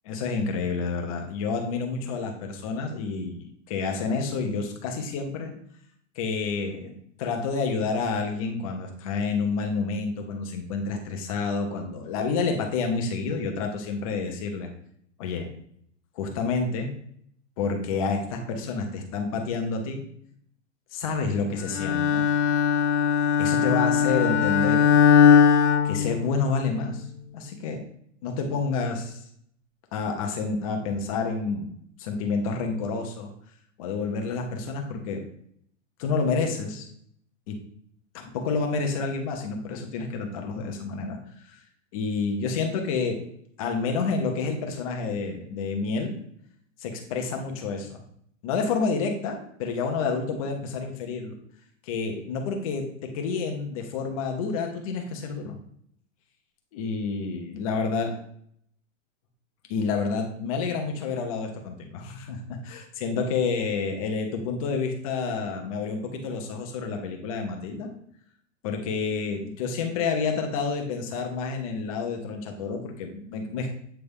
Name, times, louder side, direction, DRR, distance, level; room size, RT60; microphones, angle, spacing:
voice 1, 0.0-5.5 6.2-14.7 15.2-15.5 16.2-16.9 17.6-20.0 20.9-22.2 23.4-24.9 25.8-27.0 27.3-27.8 28.2-29.2 29.9-31.7 32.0-33.3 33.8-35.2 36.0-36.9 37.5-37.6 38.1-41.2 41.4-41.6 41.9-43.2 43.6-46.1 46.8-48.0 48.4-51.3 51.9-55.6 56.7-58.1 59.7-67.9 68.6-73.7, left 4 dB, 30° left, 3 dB, 0.8 m, -29 dB
Bowed string instrument, 21.7-26.7, left 7 dB, 65° left, 0.6 m, -20 dB
8.2 x 3.3 x 3.5 m, 0.65 s
supercardioid pair, 175°, 37 cm